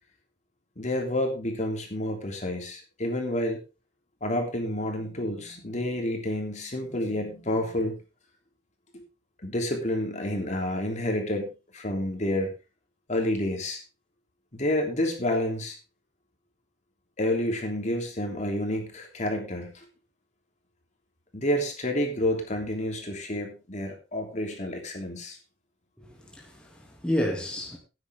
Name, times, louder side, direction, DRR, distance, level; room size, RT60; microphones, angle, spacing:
voice 1, 0.8-3.6 4.2-8.0 8.9-9.0 9.4-12.5 13.1-13.8 14.5-15.8 17.2-19.8 21.3-25.4, left 1 dB, 40° left, 3.1 m, -29 dB
voice 2, 26.0-27.8, equal, 5° left, 2.5 m, -31 dB
14.5 x 9.8 x 3.6 m
head